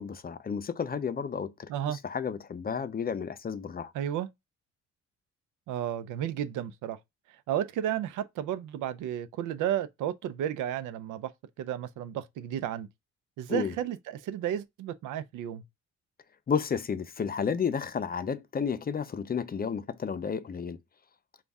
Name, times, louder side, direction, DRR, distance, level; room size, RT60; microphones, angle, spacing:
voice 1, 0.0-3.9 13.5-13.7 16.5-20.8, left 6 dB, 30° left, 0.5 m, -32 dB
voice 2, 1.7-2.0 3.9-4.3 5.7-7.0 7.5-11.3 11.6-12.9 13.4-15.6, right 10 dB, 90° right, 0.6 m, -32 dB
5.1 x 2.4 x 3.5 m
cardioid pair, 90°, 30 cm